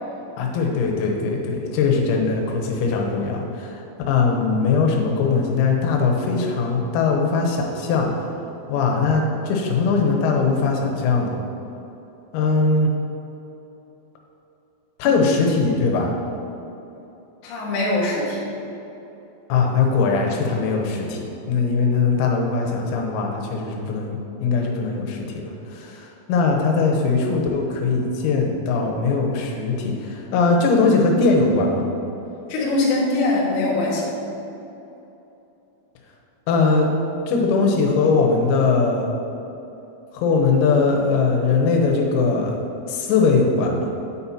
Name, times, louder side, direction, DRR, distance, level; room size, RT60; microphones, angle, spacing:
voice 1, 0.4-8.1 8.7-11.4 12.3-12.9 15.0-16.1 19.5-31.9 36.5-36.9 37.3-39.1 40.1-42.6 42.9-43.8, left 4 dB, 90° left, 1 dB, 3.7 m, -20 dB
voice 2, 17.4-18.5 32.5-34.1, left 2 dB, 65° left, -5 dB, 1.9 m, -22 dB
9.7 x 8.2 x 2.9 m, 3.0 s
omnidirectional pair, 6.0 m